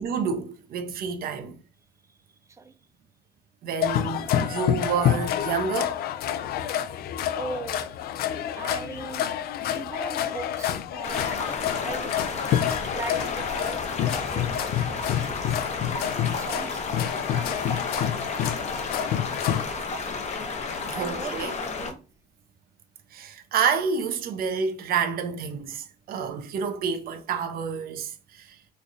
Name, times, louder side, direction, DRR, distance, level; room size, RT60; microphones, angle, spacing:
voice 1, 0.0-1.6 3.6-6.0 20.8-21.5 23.1-28.6, right 6 dB, 60° right, 0.7 m, -29 dB
sound 1, 3.8-19.6, left 10 dB, 65° left, 0.4 m, -28 dB
voice 2, 7.3-7.9 8.5-9.3 9.6-11.4 11.8-12.2 12.8-15.7 15.9-16.8 17.3-18.1 19.5-19.6 20.9-22.0, right 4 dB, 15° right, 0.4 m, -40 dB
sound 2, 11.0-21.9, left 4 dB, 40° left, 0.7 m, -32 dB
3.2 x 2.4 x 3.9 m
cardioid pair, 110°, 17 cm